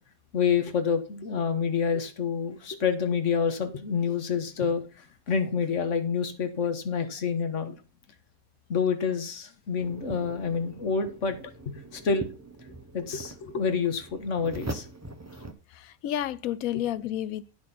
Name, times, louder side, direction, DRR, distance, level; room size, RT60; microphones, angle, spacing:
voice 1, 0.3-7.8 8.7-11.4 11.7-12.3 12.9-14.9 16.7-16.8, left 6 dB, 60° left, 1.7 m, -28 dB
sound 1, 9.8-15.5, right 1 dB, 15° right, 0.7 m, -42 dB
voice 2, 15.7-17.5, left 12 dB, 85° left, 1.1 m, -31 dB
9.6 x 6.8 x 4.2 m
omnidirectional pair, 1.5 m